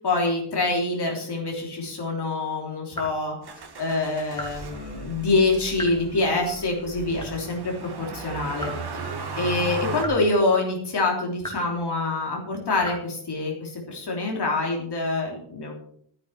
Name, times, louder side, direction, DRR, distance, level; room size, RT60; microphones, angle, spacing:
voice 1, 0.0-3.4 3.8-8.7 9.4-15.7, left 2 dB, 55° left, 0 dB, 3.4 m, -25 dB
sound 1, 2.9-3.2 4.3-4.6 5.7-6.1 7.2-7.6 8.6-8.9 10.0-10.4 10.7-10.8 11.4-11.8 12.8-12.9, equal, 10° left, 2.9 m, -37 dB
Motor vehicle (road), 3.4-10.0, right 4 dB, 50° right, 2.2 m, -36 dB
13.0 x 9.7 x 5.9 m, 0.64 s
wide cardioid pair, 165°, 49 cm